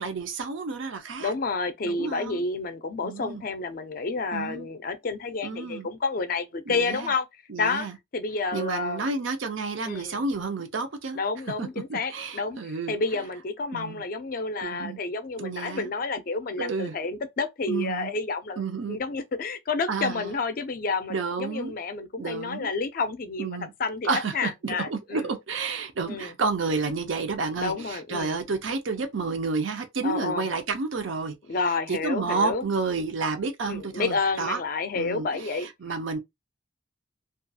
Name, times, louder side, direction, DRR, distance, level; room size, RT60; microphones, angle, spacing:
voice 1, 0.0-1.3 1.8-2.4 3.0-3.4 4.3-4.7 5.4-5.9 6.7-7.1 7.5-8.0 8.5-11.2 11.6-12.9 13.7-14.0 14.6-15.0 15.4-15.9 16.6-17.0 17.7-18.1 18.6-19.0 19.9-20.3 21.1-21.7 22.2-22.7 23.4-23.7 24.1-31.4 31.9-34.6 34.9-36.2, right 4 dB, 75° right, 0.6 m, -30 dB
voice 2, 1.2-7.3 7.6-7.9 8.1-9.1 9.8-10.2 11.1-12.6 12.9-18.6 18.9-25.3 26.1-26.3 27.6-28.4 30.0-30.5 31.5-32.7 33.7-35.7, left 4 dB, 45° left, 0.4 m, -30 dB
2.4 x 2.3 x 2.6 m
head